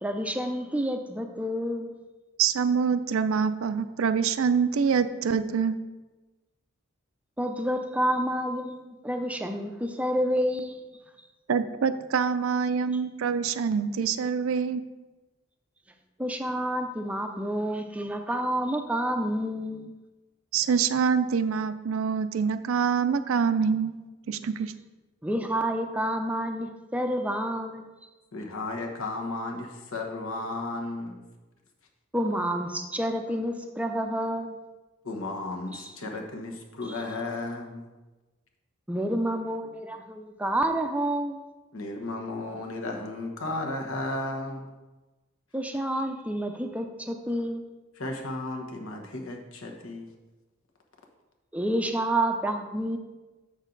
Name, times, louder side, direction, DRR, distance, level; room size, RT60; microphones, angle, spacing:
voice 1, 0.0-1.9 7.4-10.8 16.2-19.9 25.2-27.9 32.1-34.6 35.7-35.9 38.9-41.4 45.5-47.6 51.5-53.0, right 1 dB, 5° right, 5 dB, 0.4 m, -29 dB
voice 2, 2.4-5.8 11.5-14.8 20.5-23.9 24.3-24.7, right 6 dB, 75° right, 12 dB, 0.4 m, -25 dB
voice 3, 28.3-31.2 35.0-37.9 41.7-44.7 48.0-50.1, left 2 dB, 80° left, 2 dB, 1.2 m, -34 dB
7.2 x 6.3 x 3.9 m, 1.2 s
head